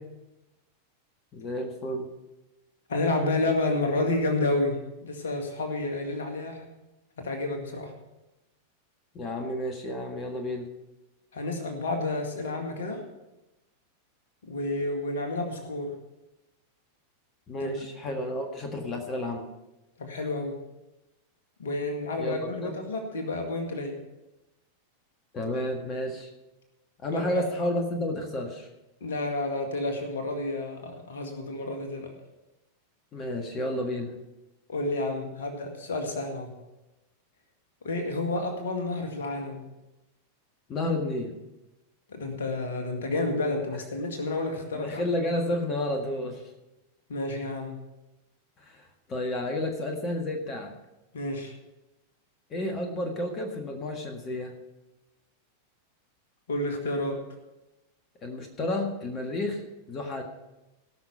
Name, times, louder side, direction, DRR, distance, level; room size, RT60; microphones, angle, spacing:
voice 1, 1.3-2.1 9.1-10.7 17.5-19.5 22.2-22.7 25.3-26.3 27.0-28.7 33.1-34.1 40.7-41.3 44.7-46.5 48.6-50.7 52.5-54.5 58.2-59.6 59.9-60.2, left 1 dB, 30° left, 3 dB, 1.6 m, -31 dB
voice 2, 2.9-6.7 7.2-7.9 11.3-13.0 14.4-15.9 17.6-17.7 20.0-20.6 21.6-23.9 27.1-27.4 29.0-32.1 34.7-36.5 37.8-39.6 42.1-45.0 47.1-47.8 51.1-51.5 56.5-57.2, left 2 dB, 65° left, 4 dB, 2.0 m, -30 dB
18.0 x 6.2 x 5.7 m, 0.99 s
figure-of-eight pair, 90°, 0 cm